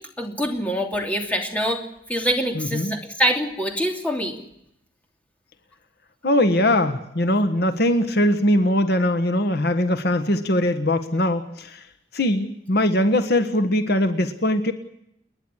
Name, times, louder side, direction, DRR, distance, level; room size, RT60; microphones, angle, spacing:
voice 1, 0.2-1.8 2.1-4.4, equal, 10° left, 2 dB, 3.0 m, -24 dB
voice 2, 2.5-2.9 6.2-11.8 12.1-14.7, left 1 dB, 60° left, 9 dB, 1.4 m, -21 dB
29.5 x 10.5 x 9.9 m, 0.78 s
head